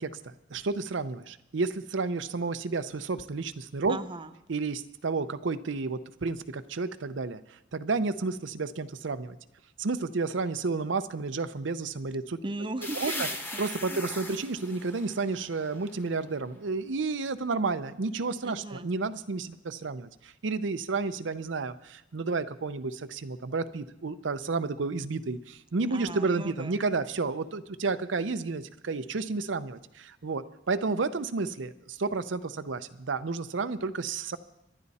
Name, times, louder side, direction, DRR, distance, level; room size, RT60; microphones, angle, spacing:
voice 1, 0.0-4.0 4.5-9.4 9.8-12.4 13.0-13.3 13.6-34.4, right 4 dB, 80° right, 11 dB, 0.7 m, -31 dB
voice 2, 3.9-4.3 12.4-13.6 13.9-14.0 18.4-18.9 25.9-26.8, right 2 dB, 25° right, 10 dB, 0.6 m, -37 dB
sound 1, 12.8-16.4, left 2 dB, 10° left, 1.2 m, -39 dB
24.5 x 11.0 x 4.2 m, 0.87 s
head